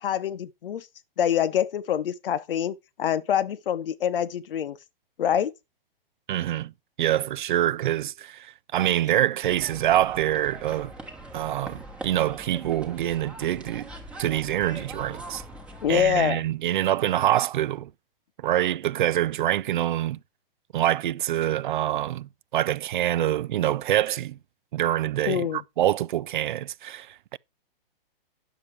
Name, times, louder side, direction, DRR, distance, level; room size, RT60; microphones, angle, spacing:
voice 1, 0.0-0.9 1.2-4.8 5.2-5.5 15.8-16.4 25.3-25.6, left 9 dB, 70° left, 0.9 m, -25 dB
voice 2, 6.3-6.7 7.0-10.9 11.3-13.9 14.2-15.4 15.9-17.9 18.4-20.2 20.7-24.4 24.7-27.4, right 12 dB, 55° right, 0.4 m, -25 dB
sound 1, 9.4-16.2, right 1 dB, 5° right, 1.2 m, -42 dB
9.9 x 7.0 x 3.2 m
hypercardioid pair, 155°, 29 cm